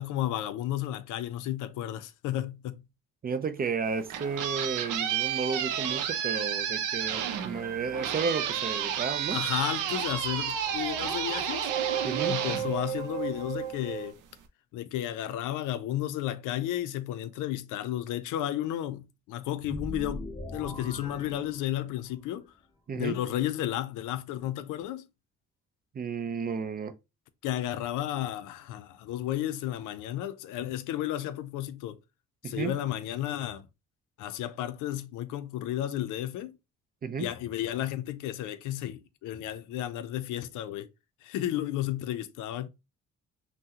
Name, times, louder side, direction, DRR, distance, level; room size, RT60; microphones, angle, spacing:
voice 1, 0.0-2.8 9.3-11.7 12.2-14.2 14.7-22.5 23.0-25.1 27.4-32.0 32.4-33.7 34.2-36.5 37.2-40.9 41.2-42.7, left 12 dB, 90° left, 0.5 m, -33 dB
voice 2, 3.2-9.4 12.0-12.3 22.9-23.2 25.9-26.9 32.4-32.7 37.0-37.3, right 5 dB, 30° right, 0.4 m, -32 dB
sound 1, 3.8-13.5, right 9 dB, 90° right, 0.5 m, -32 dB
sound 2, 7.0-14.1, right 9 dB, 60° right, 0.9 m, -37 dB
sound 3, 19.6-22.1, left 1 dB, 15° left, 0.6 m, -40 dB
3.5 x 2.1 x 2.7 m
cardioid pair, 90°, 30 cm